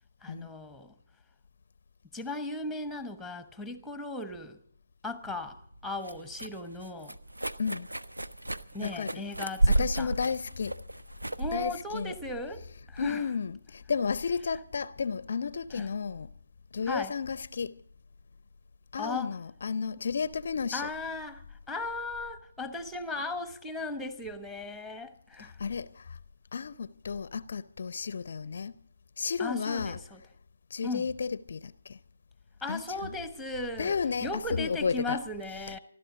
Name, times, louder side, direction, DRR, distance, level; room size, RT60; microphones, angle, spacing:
voice 1, 0.2-0.9 2.1-4.6 5.0-7.2 8.7-10.1 11.4-13.2 15.7-15.9 16.9-17.1 19.0-19.4 20.7-25.6 29.4-30.2 30.8-31.1 32.6-35.8, left 2 dB, ahead, 1.1 m, -37 dB
sound 1, 5.3-13.0, right 2 dB, 80° right, 0.8 m, -33 dB
voice 2, 8.8-9.2 9.7-10.8 11.5-12.1 13.0-16.3 16.7-17.8 18.9-20.9 25.4-26.2 26.5-28.7 29.2-30.0 30.7-32.0 32.7-33.2 33.8-35.2 35.7-35.8, left 5 dB, 50° left, 0.5 m, -33 dB
27.5 x 12.5 x 3.8 m
figure-of-eight pair, 145°, 0 cm